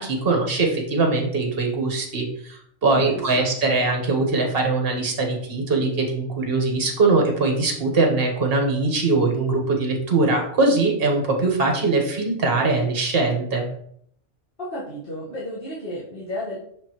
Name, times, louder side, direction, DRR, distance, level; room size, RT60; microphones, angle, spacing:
voice 1, 0.0-13.7, right 3 dB, 50° right, 2 dB, 1.4 m, -22 dB
voice 2, 2.9-3.2 3.7-3.8 14.6-16.6, equal, 50° left, -8 dB, 1.6 m, -32 dB
6.0 x 5.4 x 3.0 m, 0.67 s
omnidirectional pair, 1.3 m